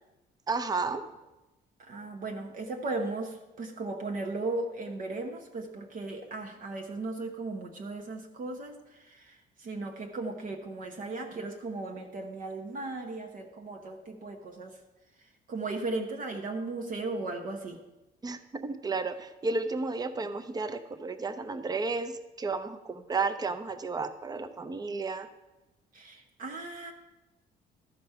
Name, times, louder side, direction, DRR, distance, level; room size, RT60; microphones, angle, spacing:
voice 1, 0.5-1.0 18.2-25.3, right 3 dB, 20° right, 10 dB, 0.7 m, -32 dB
voice 2, 1.8-14.8 15.5-17.8 25.9-26.9, right 3 dB, 50° right, 3 dB, 1.1 m, -36 dB
13.0 x 5.2 x 5.7 m, 1.0 s
cardioid pair, 130°, 18 cm